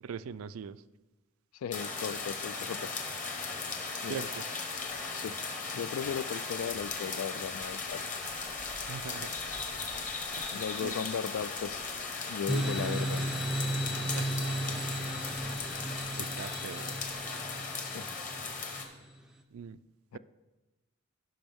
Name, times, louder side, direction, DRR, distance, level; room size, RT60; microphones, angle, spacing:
voice 1, 0.0-0.8 4.1-4.3 8.9-9.3 10.4-10.5 10.8-10.9 14.1-14.5 15.7-15.8 16.2-17.0 19.5-19.8, right 7 dB, 80° right, 16 dB, 0.4 m, -41 dB
voice 2, 1.5-2.9 4.0-4.3 5.1-5.4 5.7-8.0 10.5-11.8 12.3-13.3 17.8-18.1 20.1-20.2, left 7 dB, 80° left, 17 dB, 0.3 m, -36 dB
sound 1, 1.7-18.8, left 4 dB, 40° left, 1.3 m, -37 dB
sound 2, 12.5-19.0, right 1 dB, 5° right, 0.6 m, -35 dB
15.5 x 6.1 x 3.5 m, 1.1 s
head